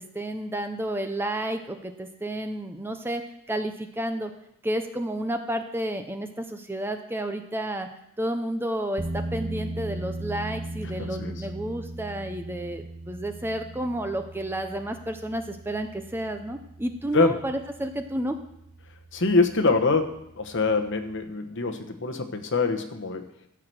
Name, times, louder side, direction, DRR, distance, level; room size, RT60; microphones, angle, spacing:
voice 1, 0.0-3.2 3.5-4.3 4.6-7.9 8.2-18.4, right 1 dB, 10° right, 6 dB, 0.6 m, -31 dB
sound 1, 9.0-21.3, right 1 dB, 25° right, 1.0 m, -39 dB
voice 2, 11.0-11.3 17.1-17.3 19.1-23.3, left 3 dB, 55° left, 6 dB, 1.0 m, -24 dB
14.0 x 4.8 x 7.7 m, 0.79 s
head